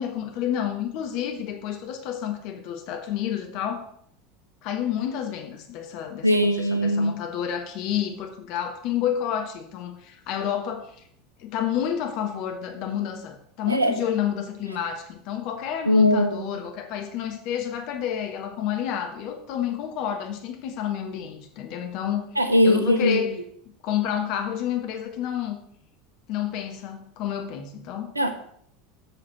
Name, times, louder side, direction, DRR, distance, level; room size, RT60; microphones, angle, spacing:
voice 1, 0.0-3.9 4.6-11.0 11.4-22.3 22.6-23.3 23.8-25.6 26.3-28.1, left 9 dB, 50° left, 6 dB, 1.2 m, -29 dB
voice 2, 6.2-7.2 13.7-14.0 15.9-16.4 22.4-23.2 28.2-28.3, left 1 dB, 85° right, 9 dB, 0.8 m, -20 dB
8.2 x 6.5 x 5.9 m, 0.66 s
figure-of-eight pair, 75°, 0 cm